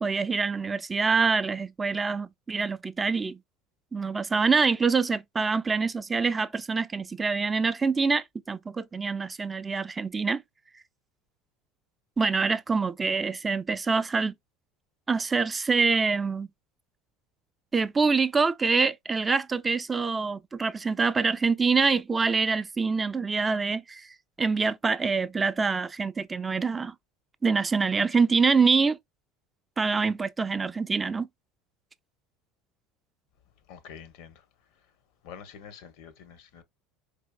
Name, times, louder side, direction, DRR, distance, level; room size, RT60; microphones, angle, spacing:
voice 1, 0.0-3.4 3.9-10.4 12.2-14.3 15.1-16.5 17.7-24.1 24.4-26.9 27.4-29.0 29.8-31.3, right 4 dB, 20° right, 0.4 m, -25 dB
voice 2, 33.7-34.4 35.2-36.6, left 7 dB, 65° left, 0.7 m, -46 dB
4.5 x 3.3 x 2.2 m
hypercardioid pair, 75°, 0 cm